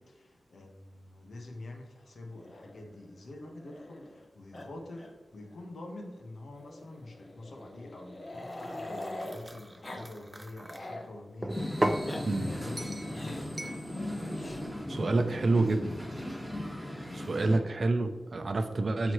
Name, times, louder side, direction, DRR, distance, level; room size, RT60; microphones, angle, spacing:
voice 1, 0.0-11.6 12.0-13.8 17.0-17.2, left 2 dB, 75° left, 1 dB, 1.5 m, -46 dB
Growling, 2.4-4.2 4.5-4.7 4.9-5.1 5.4-5.5 6.6-9.4 9.8-10.1 10.4-11.1 11.8-12.2 13.1-13.5 14.3-14.6 15.7-16.4, left 1 dB, 35° left, 1.0 m, -44 dB
sound 1, 8.5-10.8 11.4-12.1 12.8-13.1 13.6-13.8, right 1 dB, 15° right, 0.5 m, -35 dB
sound 2, 11.5-17.6, left 1 dB, 5° left, 1.7 m, -37 dB
voice 2, 14.9-16.1 17.1-19.1, right 2 dB, 55° right, 7 dB, 0.6 m, -28 dB
12.5 x 4.2 x 3.1 m, 1.2 s
wide cardioid pair, 110°, 0 cm